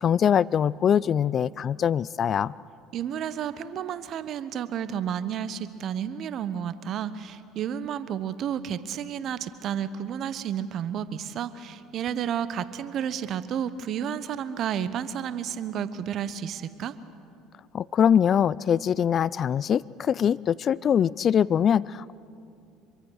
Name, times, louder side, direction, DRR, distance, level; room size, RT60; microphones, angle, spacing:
voice 1, 0.0-2.5 17.7-22.1, left 8 dB, 45° left, 22 dB, 0.4 m, -23 dB
voice 2, 2.9-16.9, right 9 dB, 55° right, 14 dB, 1.0 m, -31 dB
26.0 x 23.5 x 6.4 m, 2.6 s
hypercardioid pair, 70°, 0 cm